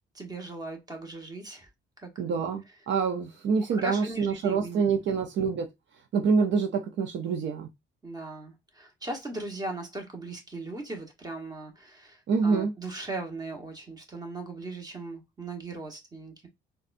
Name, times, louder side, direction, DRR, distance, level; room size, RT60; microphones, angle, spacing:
voice 1, 0.1-1.7 2.0-2.4 3.7-4.9 8.0-16.5, right 2 dB, 20° right, 1.2 m, -38 dB
voice 2, 2.2-5.7 6.1-7.7 12.3-12.7, right 5 dB, 65° right, 0.7 m, -26 dB
4.0 x 2.3 x 2.5 m
cardioid pair, 90°, 20 cm